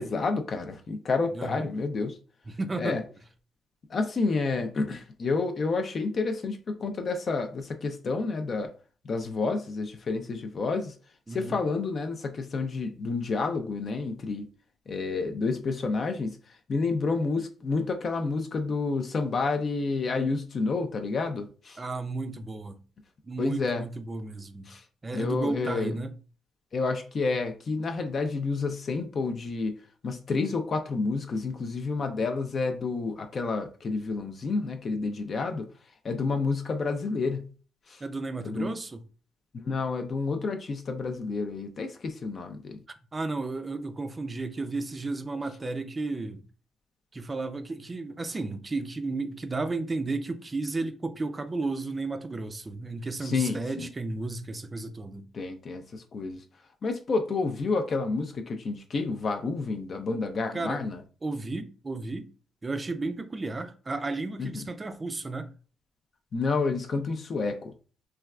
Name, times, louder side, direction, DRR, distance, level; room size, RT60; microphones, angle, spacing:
voice 1, 0.0-2.2 2.8-3.0 3.9-8.7 9.0-10.9 11.3-14.5 14.9-16.4 16.7-21.8 23.4-23.8 24.7-24.8 25.1-25.9 26.7-29.8 30.0-35.7 36.0-37.5 37.9-38.0 38.4-38.7 39.6-42.8 53.2-53.9 55.3-56.4 56.8-61.0 64.4-64.7 66.3-67.7, left 4 dB, 45° left, 0.4 m, -29 dB
voice 2, 1.3-1.7 2.5-3.0 11.3-11.6 21.8-22.8 23.2-24.7 25.0-26.1 38.0-39.0 43.1-46.4 47.1-55.3 60.5-60.9 61.2-62.3 62.6-65.5, right 3 dB, 25° right, 0.4 m, -33 dB
3.2 x 2.3 x 2.3 m
cardioid pair, 90°, 0 cm